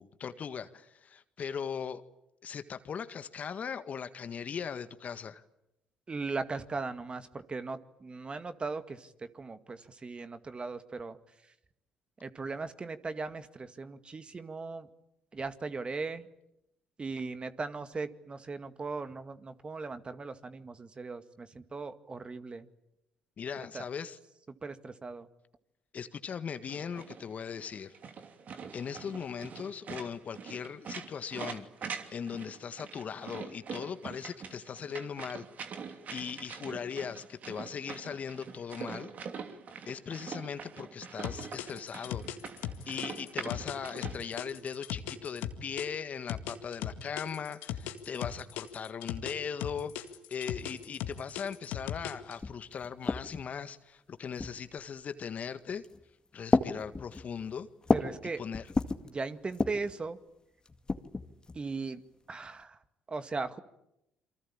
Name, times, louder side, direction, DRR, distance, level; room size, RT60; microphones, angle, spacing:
voice 1, 0.0-2.0 2.4-5.4 23.4-24.2 25.9-27.9 28.7-31.7 32.1-35.5 35.9-39.1 39.9-42.3 42.6-55.8 56.3-57.7 58.4-58.7, left 7 dB, 50° left, 12 dB, 1.7 m, -39 dB
voice 2, 6.1-11.2 12.2-14.9 15.3-16.3 17.0-22.7 23.7-23.8 24.6-25.3 57.9-58.4 59.0-60.2 61.5-62.0 62.3-62.8 63.1-63.6, right 4 dB, 30° right, 10 dB, 2.0 m, -38 dB
sound 1, 26.7-44.1, right 6 dB, 50° right, 2.8 m, -44 dB
sound 2, 41.2-45.9 46.3-49.3 49.6-52.3, left 12 dB, 75° left, 2.0 m, -37 dB
sound 3, 52.1-52.2 52.4-53.6 54.4-54.9 55.7-56.0 56.5-58.2 58.5-59.1 59.5-59.9 60.6-61.6, left 3 dB, 25° left, 2.1 m, -31 dB
27.5 x 24.5 x 8.8 m, 0.84 s
hypercardioid pair, 60°, 3 cm